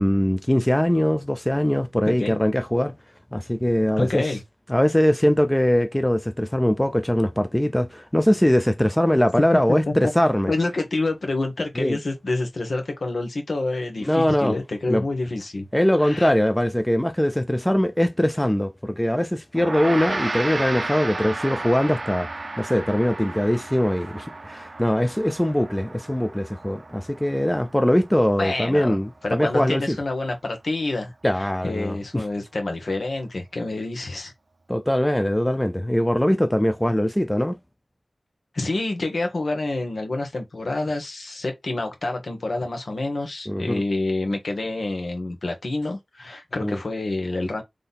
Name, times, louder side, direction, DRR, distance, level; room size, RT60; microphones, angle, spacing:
voice 1, 0.0-3.0 3.3-4.3 4.7-10.5 11.8-12.0 14.1-14.6 14.9-15.0 15.7-22.3 22.6-30.0 31.2-32.2 34.7-37.6 43.5-43.7 46.6-46.8, equal, 10° left, 0.5 m, -21 dB
voice 2, 2.1-2.4 4.0-4.4 9.9-10.0 10.5-15.7 16.0-16.3 28.4-29.0 29.2-31.1 31.4-34.3 38.5-47.6, left 2 dB, 70° left, 1.4 m, -27 dB
Gong, 19.6-29.1, right 2 dB, 45° right, 0.5 m, -33 dB
3.8 x 3.3 x 4.1 m
wide cardioid pair, 70°, 0 cm